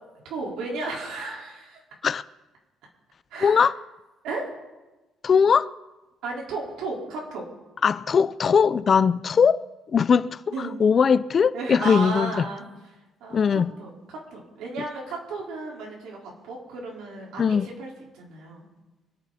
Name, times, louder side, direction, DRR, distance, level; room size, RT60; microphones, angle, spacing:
voice 1, 0.2-1.8 3.3-3.6 4.2-4.5 6.2-7.5 10.5-10.7 11.5-12.6 13.2-13.4 13.8-13.9 14.3-18.7, right 3 dB, 85° right, 4.4 m, -33 dB
voice 2, 3.4-3.8 5.2-5.7 7.8-12.5 13.3-13.7 17.4-17.7, left 6 dB, 30° left, 0.4 m, -20 dB
26.0 x 9.5 x 4.2 m
cardioid pair, 180°, 0 cm